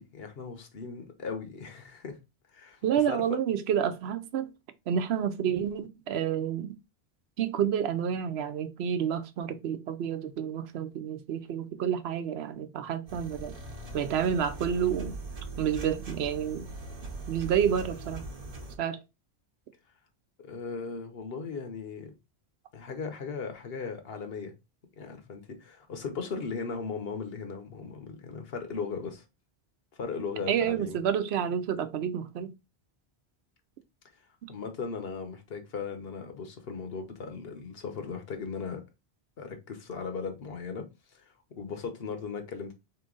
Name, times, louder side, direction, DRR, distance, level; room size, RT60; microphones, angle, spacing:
voice 1, 0.0-2.2 2.5-3.2 20.4-22.1 22.7-24.5 25.0-29.2 29.9-31.0 34.5-38.8 39.4-40.9 41.1-41.2 41.5-42.7, left 5 dB, 65° left, 1.1 m, -37 dB
voice 2, 2.8-4.5 4.9-6.7 7.4-13.5 13.9-15.2 15.6-16.7 17.3-18.2 18.8-19.0 30.5-32.5, right 8 dB, 80° right, 0.8 m, -29 dB
sound 1, 13.1-18.8, right 2 dB, 40° right, 0.8 m, -40 dB
3.8 x 3.0 x 3.7 m
omnidirectional pair, 1.1 m